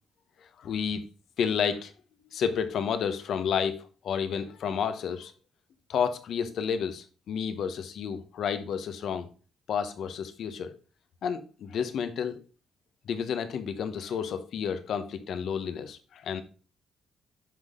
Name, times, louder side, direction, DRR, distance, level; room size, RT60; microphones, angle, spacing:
voice 1, 0.6-1.0 1.4-1.9 2.3-5.3 5.9-9.3 9.7-10.7 11.2-12.4 13.1-16.4, left 7 dB, 70° left, 1.0 m, -31 dB
10.5 x 4.1 x 3.7 m
cardioid pair, 90°, 0 cm